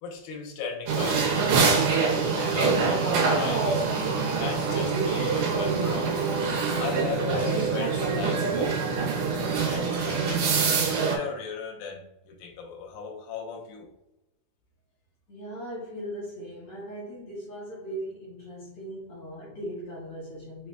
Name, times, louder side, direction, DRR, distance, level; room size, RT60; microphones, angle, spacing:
voice 1, 0.0-1.3 1.8-3.9 4.4-6.2 6.8-8.8 9.6-10.7 11.1-13.9, left 5 dB, 75° left, 0 dB, 2.5 m, -36 dB
sound 1, 0.9-11.2, right 5 dB, 85° right, 2.8 m, -25 dB
voice 2, 15.3-20.7, equal, 50° left, -8 dB, 1.9 m, -38 dB
6.1 x 3.4 x 2.2 m, 0.92 s
omnidirectional pair, 4.4 m